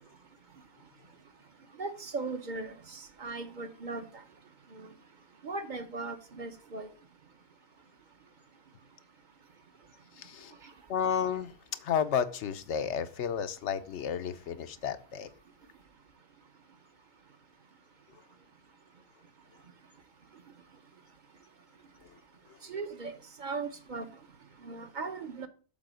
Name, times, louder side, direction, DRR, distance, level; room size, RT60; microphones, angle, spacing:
voice 1, 1.8-4.1 4.7-4.9 5.4-6.9 22.7-23.1 23.4-24.1 24.6-25.5, right 3 dB, 50° right, 0.8 m, -38 dB
voice 2, 10.2-10.5 10.9-11.5 11.8-15.3, left 7 dB, 85° left, 1.0 m, -32 dB
7.4 x 4.1 x 6.2 m
omnidirectional pair, 1.2 m